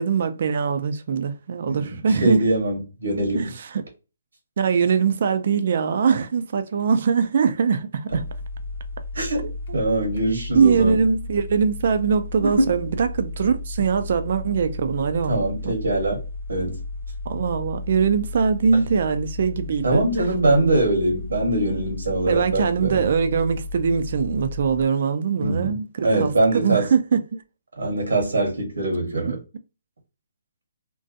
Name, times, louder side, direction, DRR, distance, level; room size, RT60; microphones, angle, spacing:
voice 1, 0.0-2.4 3.3-3.8 4.6-8.3 9.4-9.5 10.5-15.7 17.3-20.3 22.3-27.4, right 6 dB, 50° right, 0.3 m, -22 dB
voice 2, 2.2-3.5 9.1-9.4 9.7-10.9 12.4-12.7 15.3-16.2 16.5-16.8 19.8-23.0 25.4-25.7 26.0-26.9 27.8-29.4, right 2 dB, 90° right, 1.0 m, -22 dB
sound 1, 8.1-24.8, left 2 dB, 50° left, 0.7 m, -34 dB
2.5 x 2.2 x 2.4 m
hypercardioid pair, 160°, 0 cm